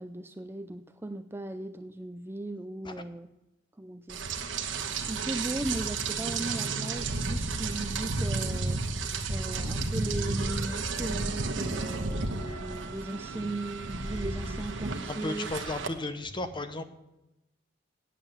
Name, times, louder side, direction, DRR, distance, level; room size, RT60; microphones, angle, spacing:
voice 1, 0.0-3.3 3.8-4.2 5.1-8.8 9.3-15.5, right 2 dB, 10° right, 9 dB, 0.4 m, -37 dB
Rain, 4.1-15.9, right 3 dB, 80° right, 1.2 m, -32 dB
voice 2, 15.1-16.8, left 2 dB, 25° left, 9 dB, 0.9 m, -34 dB
9.1 x 7.5 x 9.0 m, 0.96 s
head